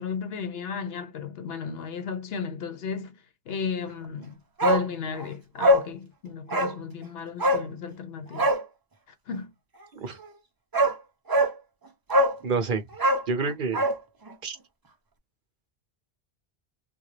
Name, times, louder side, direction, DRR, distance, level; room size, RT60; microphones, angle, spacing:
voice 1, 0.0-3.2 3.5-8.5 9.3-9.5, left 6 dB, 75° left, 0.9 m, -34 dB
Bark, 4.6-4.9 5.2-5.3 5.6-5.9 6.5-6.8 7.4-7.7 8.3-8.6 10.2-10.3 10.7-11.0 11.3-11.5 12.1-12.4 12.9-14.0 14.3-14.4, equal, 25° right, 0.5 m, -22 dB
voice 2, 12.4-12.8 13.3-13.8 14.4-14.6, right 4 dB, 55° right, 0.8 m, -28 dB
3.6 x 2.3 x 3.2 m
omnidirectional pair, 1.1 m